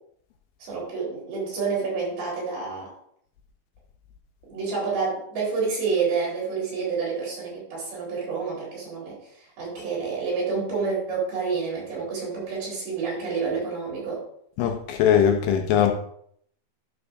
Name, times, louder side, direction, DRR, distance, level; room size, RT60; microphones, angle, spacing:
voice 1, 0.6-2.9 4.5-14.2, right 5 dB, 80° right, -5 dB, 5.6 m, -28 dB
voice 2, 14.6-15.9, left 9 dB, 80° left, 5 dB, 2.1 m, -20 dB
11.0 x 6.5 x 2.6 m, 0.67 s
omnidirectional pair, 4.3 m